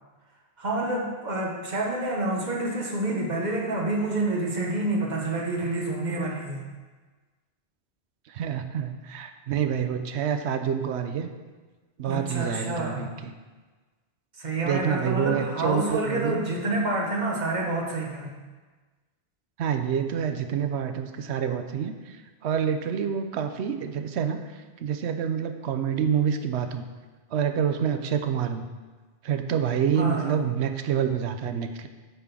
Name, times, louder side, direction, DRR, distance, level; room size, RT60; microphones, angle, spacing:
voice 1, 0.6-6.6 12.0-13.1 14.4-18.3 29.9-30.3, right 2 dB, 40° right, -1 dB, 1.3 m, -28 dB
voice 2, 8.3-11.3 12.0-13.3 14.6-16.4 19.6-22.2 22.4-24.4 24.8-26.8 27.3-28.6 29.2-31.9, right 8 dB, 80° right, 8 dB, 0.9 m, -27 dB
8.8 x 3.8 x 5.9 m, 1.3 s
omnidirectional pair, 1.1 m